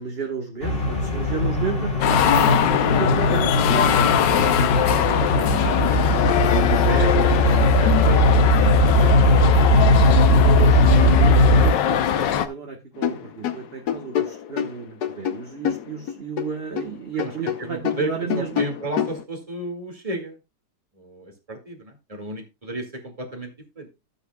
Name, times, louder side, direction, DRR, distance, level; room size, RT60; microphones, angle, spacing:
voice 1, 0.0-4.1 6.8-7.0 10.5-18.6, right 6 dB, 35° right, 1 dB, 1.4 m, -33 dB
sound 1, 0.6-11.7, equal, 30° left, 2.7 m, -18 dB
sound 2, 2.0-12.5, left 10 dB, 80° left, 1.5 m, -21 dB
voice 2, 5.3-6.0 6.3-9.1 17.2-17.3 17.6-18.1 18.4-20.4 21.0-23.5 23.8-23.9, right 2 dB, 20° right, 4 dB, 2.0 m, -33 dB
sound 3, 13.0-16.9 17.2-19.2, left 9 dB, 65° left, 1.4 m, -27 dB
13.5 x 8.4 x 2.3 m, 0.25 s
omnidirectional pair, 1.9 m